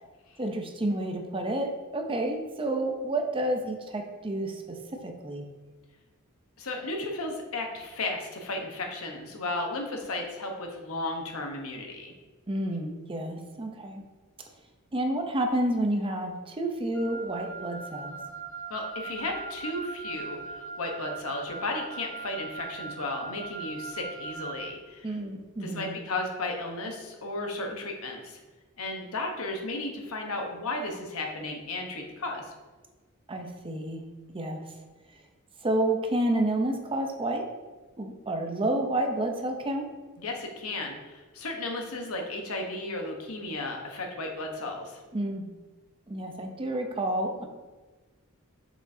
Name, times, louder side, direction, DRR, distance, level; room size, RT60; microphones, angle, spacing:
voice 1, 0.4-4.8 5.0-5.4 12.5-14.0 14.9-18.2 25.0-25.9 33.3-34.0 34.3-34.6 35.6-37.5 38.0-39.9 45.1-45.5 46.1-47.5, right 1 dB, 25° right, 4 dB, 0.7 m, -30 dB
voice 2, 6.6-12.1 18.7-25.2 25.6-28.4 28.8-32.5 40.2-45.0, left 2 dB, 85° left, 2 dB, 1.1 m, -34 dB
Wind instrument woodwind instrument, 16.9-24.7, right 4 dB, 10° left, 1.1 m, -40 dB
6.5 x 6.1 x 2.7 m, 1.3 s
head